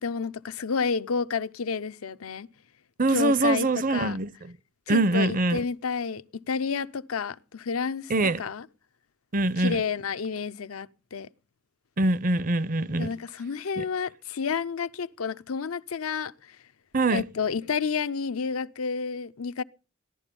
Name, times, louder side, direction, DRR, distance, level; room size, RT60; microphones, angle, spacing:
voice 1, 0.0-2.5 3.1-4.2 4.9-8.1 8.4-8.7 9.6-11.3 13.0-16.6 17.1-19.6, left 5 dB, 85° left, 0.7 m, -30 dB
voice 2, 3.0-4.5 4.9-5.6 8.1-8.4 9.3-9.8 12.0-13.1 13.8-13.9 16.9-17.2, right 2 dB, 40° right, 0.6 m, -24 dB
16.0 x 11.5 x 5.3 m
head